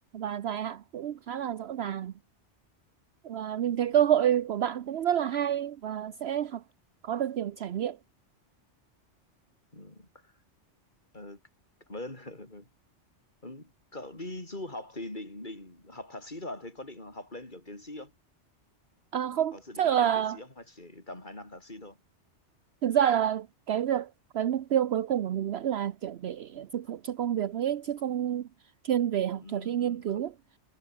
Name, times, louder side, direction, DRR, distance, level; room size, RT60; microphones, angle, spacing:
voice 1, 0.1-2.1 3.2-6.6 7.0-8.0 19.1-20.4 22.8-28.5 28.8-30.3, right 10 dB, 65° right, 0.9 m, -28 dB
voice 2, 3.7-4.0 9.7-10.3 11.1-11.4 11.9-12.7 13.4-18.1 19.3-22.0 29.4-30.0, left 1 dB, 40° left, 4.7 m, -43 dB
omnidirectional pair, 1.2 m